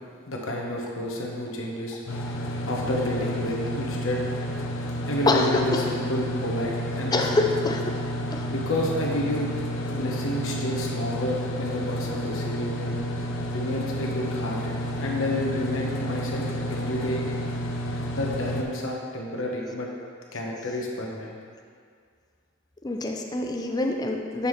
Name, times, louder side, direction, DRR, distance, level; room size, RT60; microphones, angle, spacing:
voice 1, 0.3-2.0 2.3-2.4 2.7-4.2 5.1-7.3 7.6-7.7 8.5-9.5 9.9-13.0 13.5-17.2 18.1-19.9 20.3-21.4, left 1 dB, 90° left, -1 dB, 1.0 m, -30 dB
sound 1, 2.1-18.6, equal, 75° left, 0.6 m, -30 dB
voice 2, 5.3-5.8 7.1-7.9 8.3-8.5 22.8-24.5, left 2 dB, 20° left, 2 dB, 0.5 m, -25 dB
7.0 x 5.6 x 3.2 m, 2.1 s
head